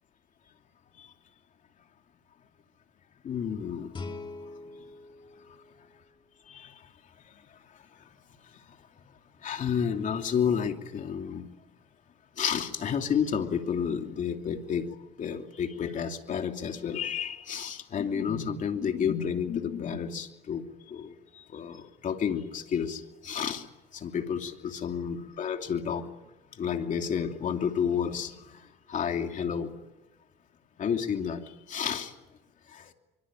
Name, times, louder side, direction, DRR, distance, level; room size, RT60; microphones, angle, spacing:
voice 1, 3.2-3.9 6.5-6.7 9.4-11.5 12.4-14.9 15.2-20.6 20.9-21.1 21.5-23.6 23.9-26.0 26.6-28.6 28.9-29.7 30.8-31.4 31.7-32.1 32.7-32.8, left 7 dB, 50° left, 5 dB, 2.9 m, -30 dB
Guitar, 3.9-6.7, left 3 dB, 30° left, 3.3 m, -44 dB
24.5 x 24.5 x 9.1 m, 0.99 s
cardioid pair, 110°, 17 cm